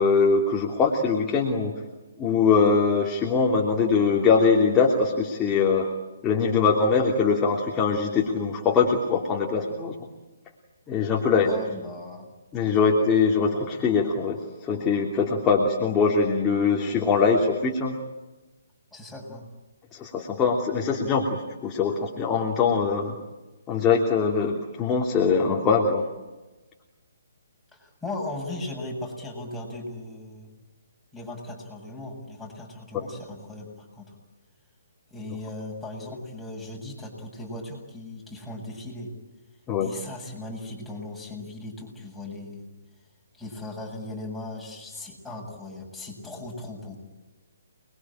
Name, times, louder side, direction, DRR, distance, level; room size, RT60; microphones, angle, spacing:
voice 1, 0.0-1.8 2.2-5.9 6.2-9.9 10.9-11.5 12.5-18.0 19.9-23.1 23.7-26.1 32.9-33.1 39.7-39.9, left 5 dB, 20° left, -1 dB, 3.0 m, -22 dB
voice 2, 11.4-12.3 18.9-19.4 27.7-30.5 31.1-34.2 35.1-39.1 39.8-42.7 43.3-47.0, left 2 dB, ahead, -3 dB, 7.7 m, -37 dB
29.0 x 22.0 x 8.9 m, 1.1 s
figure-of-eight pair, 140°, 0 cm